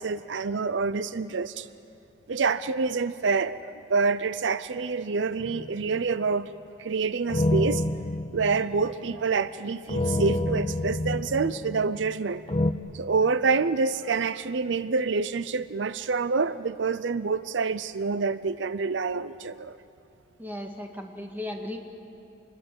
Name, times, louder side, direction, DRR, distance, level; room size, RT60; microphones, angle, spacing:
voice 1, 0.0-1.7 2.3-6.5 6.8-7.8 8.3-12.4 12.9-19.8, right 4 dB, 75° right, 15 dB, 0.5 m, -27 dB
sound 1, 5.4-6.0 7.3-9.1 9.9-12.1 12.5-12.7, left 2 dB, 30° left, 0.6 m, -28 dB
voice 2, 20.4-21.8, left 1 dB, 10° right, 2 dB, 1.9 m, -36 dB
27.0 x 21.5 x 7.8 m, 2.6 s
head